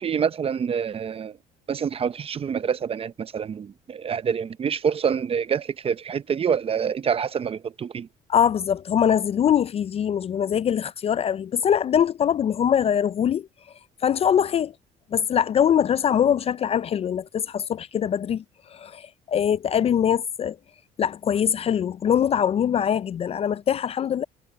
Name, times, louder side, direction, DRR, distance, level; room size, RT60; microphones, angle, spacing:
voice 1, 0.0-1.4 1.7-8.1, right 7 dB, 35° right, 0.7 m, -26 dB
voice 2, 8.3-13.5 14.0-14.7 15.1-18.4 18.7-20.6 21.0-24.2, left 8 dB, 35° left, 0.4 m, -23 dB
cardioid pair, 110°, 17 cm